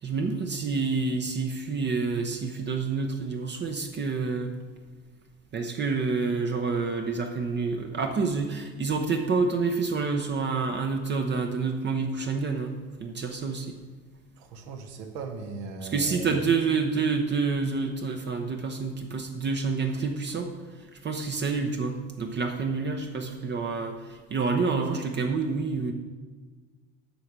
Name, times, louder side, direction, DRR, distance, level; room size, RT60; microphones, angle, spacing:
voice 1, 0.0-4.5 5.5-13.8 15.8-25.9, right 4 dB, 30° right, 3 dB, 0.9 m, -28 dB
voice 2, 14.4-16.4, right 4 dB, 65° right, 4 dB, 1.4 m, -38 dB
7.9 x 4.8 x 6.6 m, 1.4 s
hypercardioid pair, 80°, 36 cm